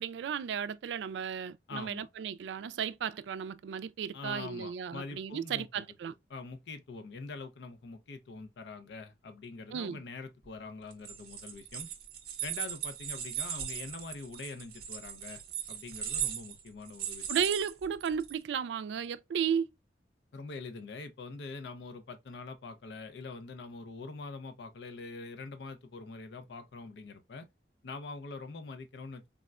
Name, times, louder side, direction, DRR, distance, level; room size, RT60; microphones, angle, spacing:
voice 1, 0.0-6.1 9.7-10.0 17.3-19.7, right 7 dB, 85° right, 0.3 m, -34 dB
voice 2, 1.7-2.1 4.1-5.8 6.3-11.9 12.4-15.4 15.7-17.3 20.3-27.5 27.8-29.3, left 3 dB, 80° left, 0.5 m, -44 dB
sound 1, 10.9-18.3, right 9 dB, 55° right, 0.7 m, -38 dB
3.5 x 2.1 x 2.3 m
head